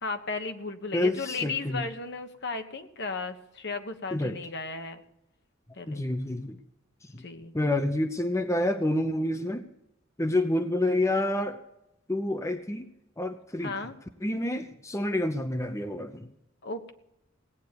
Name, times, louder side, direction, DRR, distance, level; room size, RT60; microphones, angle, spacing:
voice 1, 0.0-5.0 5.8-6.0 7.2-7.5 13.6-14.0 16.6-16.9, left 4 dB, 60° left, 7 dB, 1.4 m, -35 dB
voice 2, 0.9-1.8 4.1-4.4 5.9-6.6 7.1-7.2 7.5-9.6 10.2-11.6 12.1-12.9 13.2-13.7 14.2-16.3, left 1 dB, 15° left, 8 dB, 0.8 m, -28 dB
18.0 x 9.4 x 6.9 m, 0.82 s
head